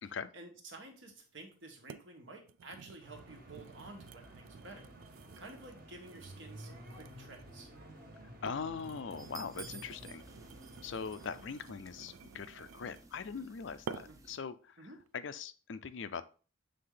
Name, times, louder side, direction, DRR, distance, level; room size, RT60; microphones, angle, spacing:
voice 1, 0.3-7.7 14.1-14.2 14.8-15.0, right 2 dB, 65° right, 3 dB, 1.4 m, -52 dB
sound 1, 1.1-1.2 1.9-2.1 2.4-7.6 8.2-13.2 13.9-14.3 14.8-15.1, right 6 dB, 85° right, 0.4 m, -51 dB
sound 2, 3.0-11.4, equal, 45° right, 1.5 m, -53 dB
voice 2, 8.4-10.2 10.8-14.9 15.1-16.2, left 6 dB, 65° left, 13 dB, 0.4 m, -41 dB
sound 3, 9.2-14.4, right 3 dB, 15° right, 0.5 m, -54 dB
7.6 x 3.5 x 3.9 m, 0.37 s
head